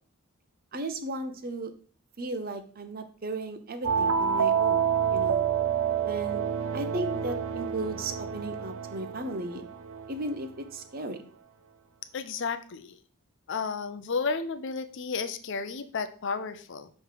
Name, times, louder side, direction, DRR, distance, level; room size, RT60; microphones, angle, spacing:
voice 1, 0.7-1.7 2.2-4.8 5.1-5.5 6.0-6.4 6.7-9.7 10.1-11.2, right 2 dB, 45° right, 8 dB, 0.7 m, -35 dB
sound 1, 3.8-10.3, right 7 dB, 90° right, 0.6 m, -28 dB
voice 2, 12.1-13.0 13.5-16.9, left 4 dB, 55° left, 10 dB, 0.5 m, -32 dB
6.4 x 3.2 x 5.0 m, 0.44 s
head